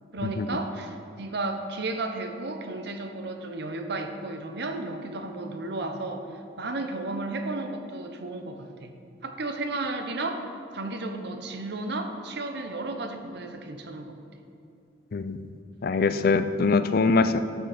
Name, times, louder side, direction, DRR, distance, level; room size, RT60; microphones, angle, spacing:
voice 1, 0.1-6.3 6.6-8.9 9.2-10.4 10.7-14.2 16.0-16.3, right 2 dB, 60° right, 6 dB, 0.8 m, -33 dB
voice 2, 15.1-15.5 15.8-17.4, left 4 dB, 50° left, 11 dB, 0.4 m, -23 dB
11.5 x 6.4 x 5.0 m, 2.5 s
head